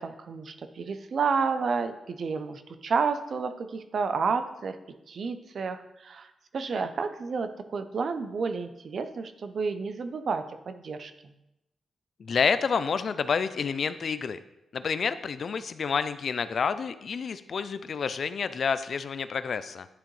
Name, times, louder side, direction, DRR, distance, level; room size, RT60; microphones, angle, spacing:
voice 1, 0.0-4.8 5.1-11.3, right 5 dB, 60° right, 9 dB, 0.5 m, -31 dB
voice 2, 12.2-14.4 14.7-19.9, left 6 dB, 60° left, 13 dB, 0.4 m, -29 dB
10.0 x 3.7 x 3.1 m, 0.90 s
cardioid pair, 80°, 0 cm